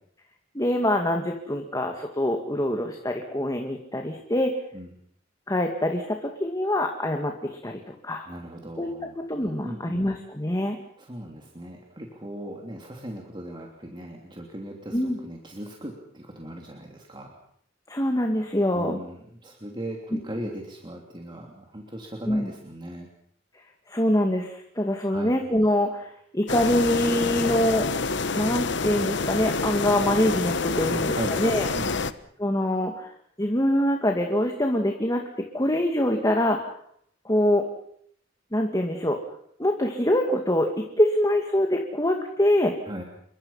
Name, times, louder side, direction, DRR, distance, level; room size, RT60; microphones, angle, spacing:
voice 1, 0.5-4.6 5.5-8.3 8.8-8.9 9.3-10.8 14.9-15.2 17.9-19.0 20.1-20.2 22.3-22.5 23.9-27.9 28.3-31.7 32.4-36.6 37.2-37.6 38.5-39.2 39.6-42.7, left 1 dB, 20° left, 3 dB, 2.2 m, -24 dB
voice 2, 8.3-9.1 9.6-10.0 11.0-17.4 18.7-23.1 25.1-25.3 30.7-31.4 31.7-32.1 42.8-43.0, right 1 dB, 25° right, 0 dB, 3.1 m, -38 dB
sound 1, 26.5-32.1, left 4 dB, 65° left, 1.0 m, -27 dB
28.0 x 23.5 x 5.8 m, 0.65 s
head